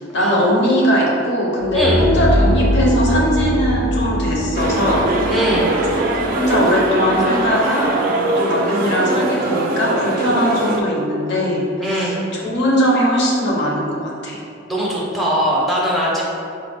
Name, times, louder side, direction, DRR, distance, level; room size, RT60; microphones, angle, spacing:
voice 1, 0.1-5.1 5.9-6.0 6.3-7.9 8.4-12.2 12.4-14.4, equal, 60° left, -3 dB, 0.8 m, -19 dB
sound 1, 1.6-7.5, equal, 80° left, 1.2 m, -21 dB
sound 2, 4.5-10.8, right 2 dB, 45° right, 0.4 m, -21 dB
voice 2, 5.3-5.7 11.8-12.3 14.7-16.2, equal, ahead, -5 dB, 0.6 m, -20 dB
4.1 x 2.3 x 3.4 m, 2.6 s
head